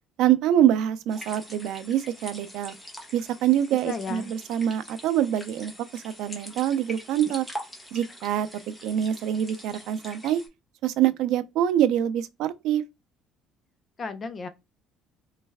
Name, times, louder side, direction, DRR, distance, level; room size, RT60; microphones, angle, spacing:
voice 1, 0.2-2.7 3.1-7.5 7.9-10.4 10.8-12.8, right 11 dB, 70° right, 0.4 m, -25 dB
sound 1, 1.1-10.5, equal, 5° left, 0.9 m, -43 dB
voice 2, 3.8-4.3 14.0-14.5, left 5 dB, 25° left, 0.4 m, -33 dB
3.2 x 3.1 x 3.4 m
cardioid pair, 155°, 0 cm